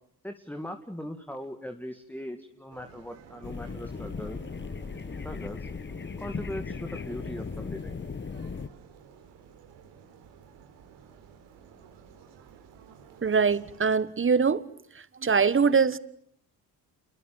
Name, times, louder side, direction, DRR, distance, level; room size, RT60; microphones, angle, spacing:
voice 1, 0.2-4.4 5.2-5.7 6.2-8.0, equal, 5° left, 2.3 m, -39 dB
sound 1, 2.7-14.0, right 7 dB, 85° right, 4.3 m, -53 dB
sound 2, 3.4-8.7, left 5 dB, 25° left, 1.2 m, -37 dB
voice 2, 13.2-14.6 14.9-16.0, right 5 dB, 30° right, 1.5 m, -23 dB
28.0 x 22.5 x 9.1 m
supercardioid pair, 65°, 41 cm